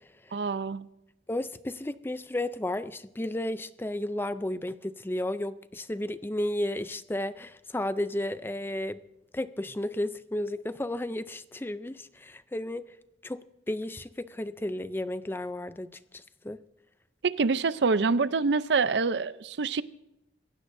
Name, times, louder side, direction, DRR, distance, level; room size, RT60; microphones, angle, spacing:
voice 1, 0.3-0.9 17.2-19.8, right 4 dB, 75° right, 0.6 m, -26 dB
voice 2, 1.3-9.0 9.3-12.8 13.2-16.6, left 1 dB, 15° left, 0.4 m, -33 dB
26.5 x 16.0 x 2.6 m
head